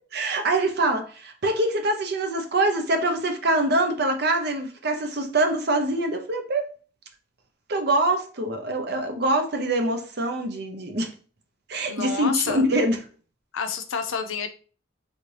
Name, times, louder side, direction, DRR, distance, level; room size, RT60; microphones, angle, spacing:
voice 1, 0.1-6.7 7.7-11.1 11.7-13.0, right 1 dB, 50° right, 0.6 m, -24 dB
voice 2, 11.9-12.6 13.5-14.5, left 6 dB, 80° left, 0.5 m, -28 dB
3.3 x 2.6 x 3.2 m
head